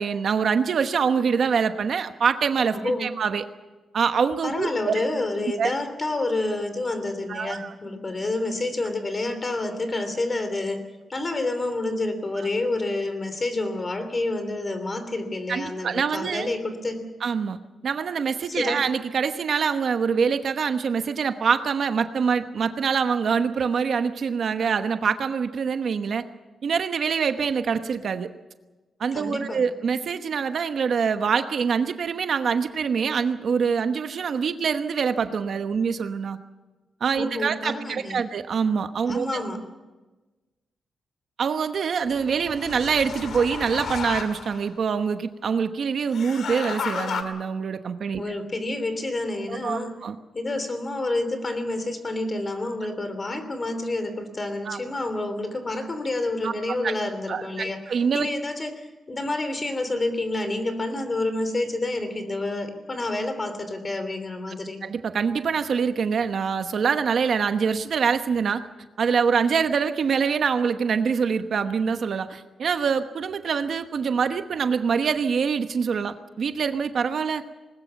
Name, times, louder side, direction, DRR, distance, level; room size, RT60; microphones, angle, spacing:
voice 1, 0.0-3.4 3.9-5.0 5.6-5.7 7.3-7.7 15.5-16.5 17.2-26.2 26.6-28.3 29.0-36.4 37.0-39.3 41.4-48.2 49.5-50.1 54.7-54.8 56.4-56.5 56.8-56.9 57.3-58.3 64.8-68.6 69.0-77.4, right 6 dB, 55° right, 8 dB, 1.1 m, -25 dB
voice 2, 2.7-3.1 4.4-10.8 11.1-17.0 18.5-18.8 29.1-29.6 37.2-38.2 39.1-39.6 48.1-50.0 50.3-57.8 58.1-64.8, left 2 dB, 25° left, 9 dB, 3.1 m, -28 dB
sound 1, 42.1-44.7 46.1-47.2, left 6 dB, 70° left, 2.1 m, -33 dB
20.5 x 20.0 x 7.1 m, 1.2 s
wide cardioid pair, 140°, 0 cm